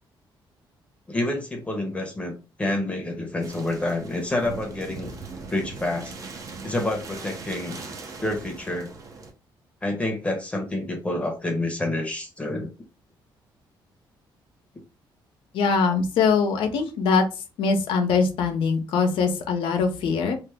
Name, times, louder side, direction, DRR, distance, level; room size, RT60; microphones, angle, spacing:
voice 1, 1.1-2.3 2.6-5.1 5.5-6.1 6.6-7.8 8.2-8.9 9.8-12.7, left 1 dB, 15° left, 2 dB, 0.8 m, -28 dB
sound 1, 3.4-9.3, right 4 dB, 40° right, 0.7 m, -39 dB
voice 2, 15.5-17.3 17.6-20.4, left 5 dB, 85° left, 5 dB, 0.8 m, -22 dB
3.1 x 2.0 x 3.4 m, 0.30 s
cardioid pair, 145°, 9 cm